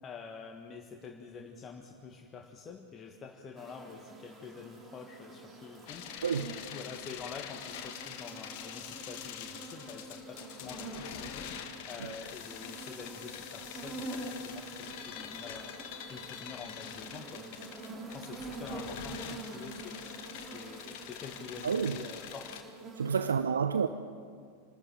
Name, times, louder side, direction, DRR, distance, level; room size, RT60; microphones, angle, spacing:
voice 1, 0.0-15.7 16.1-17.6 18.1-20.0 20.4-22.6 23.1-23.4, left 5 dB, 25° left, 2 dB, 1.7 m, -47 dB
sound 1, 3.6-23.2, right 2 dB, 20° right, 3.2 m, -46 dB
sound 2, 5.9-22.6, left 9 dB, 50° left, 1.8 m, -45 dB
voice 2, 6.2-6.6 12.0-12.1 21.6-22.0 23.0-23.9, right 6 dB, 70° right, 10 dB, 0.7 m, -29 dB
27.0 x 13.5 x 9.2 m, 2.1 s
figure-of-eight pair, 90°, 0 cm